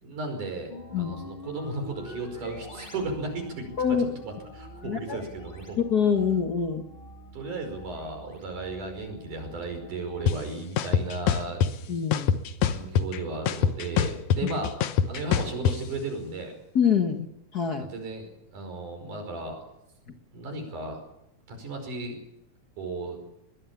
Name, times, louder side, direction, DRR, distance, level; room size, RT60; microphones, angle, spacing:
voice 1, 0.0-5.8 7.3-11.7 12.6-14.7 15.1-16.5 17.8-18.3 18.5-19.6 20.3-21.0 21.5-22.2 22.8-23.2, right 2 dB, 85° right, 5 dB, 6.7 m, -35 dB
sound 1, 0.7-10.4, equal, 15° left, 3.2 m, -46 dB
voice 2, 4.8-5.2 5.8-6.8 11.9-12.3 14.4-14.5 16.7-17.3 17.5-17.9, left 7 dB, 45° left, 5 dB, 1.4 m, -25 dB
sound 2, 10.3-10.4 10.8-11.7 12.1-13.2 13.5-15.8, left 8 dB, 70° left, 2.4 m, -23 dB
22.0 x 20.5 x 7.3 m, 0.79 s
omnidirectional pair, 3.5 m